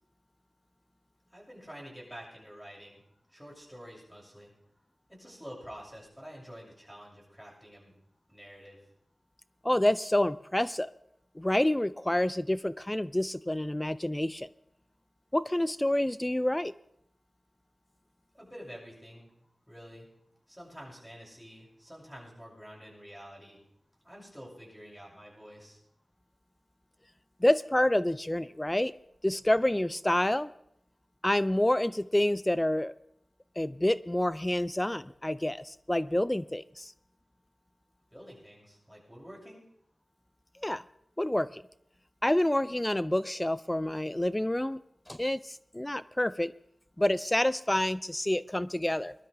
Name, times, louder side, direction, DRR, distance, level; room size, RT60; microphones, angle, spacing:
voice 1, 1.3-3.0 3.3-4.5 5.1-7.9 8.3-8.9 18.3-19.3 19.7-20.1 20.5-23.6 24.0-25.8 38.1-39.7, equal, ahead, -3 dB, 6.9 m, -48 dB
voice 2, 9.6-10.9 11.4-14.5 15.3-16.7 27.4-28.9 29.2-30.5 31.2-32.9 33.6-36.9 40.6-40.8 41.2-41.6 42.2-44.8 45.1-46.5 47.0-49.1, left 1 dB, 15° left, 17 dB, 0.4 m, -28 dB
21.0 x 12.0 x 3.4 m, 0.72 s
cardioid pair, 55°, 0 cm